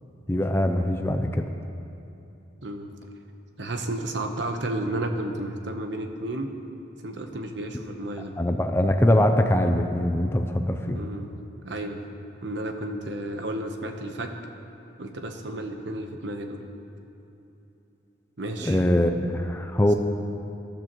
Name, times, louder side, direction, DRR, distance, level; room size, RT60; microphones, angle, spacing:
voice 1, 0.3-1.5 8.4-11.0 18.6-19.9, left 1 dB, 15° left, 5 dB, 0.5 m, -22 dB
voice 2, 3.6-6.5 7.0-8.4 10.9-11.3 11.6-12.0 12.4-14.3 15.0-16.6 18.4-18.8, right 1 dB, 70° right, 4 dB, 1.0 m, -32 dB
19.0 x 12.0 x 3.1 m, 2.9 s
head